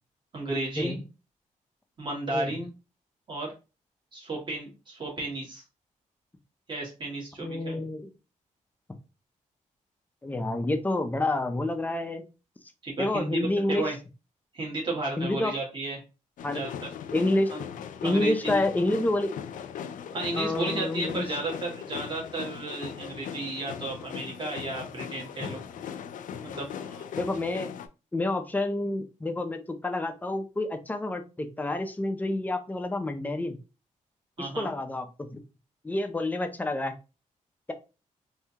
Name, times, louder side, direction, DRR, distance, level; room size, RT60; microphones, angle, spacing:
voice 1, 0.3-1.0 2.0-2.7 3.3-3.5 4.1-5.6 6.7-7.9 12.8-14.0 14.5-16.0 16.5-16.7 17.5-17.6 18.0-18.6 20.1-25.6 26.4-27.0 34.4-34.7, right 2 dB, 35° right, -2 dB, 1.6 m, -33 dB
voice 2, 7.4-8.1 10.2-12.2 13.0-13.9 15.2-15.6 16.4-16.6 17.1-17.5 18.0-19.4 20.4-21.3 25.5-25.6 27.2-27.7 28.1-33.6 34.4-35.4 35.8-36.9, left 2 dB, 10° left, 7 dB, 0.4 m, -28 dB
sound 1, 16.4-27.9, left 8 dB, 80° left, 0.4 m, -39 dB
3.5 x 2.7 x 2.8 m, 0.31 s
wide cardioid pair, 130°, 13 cm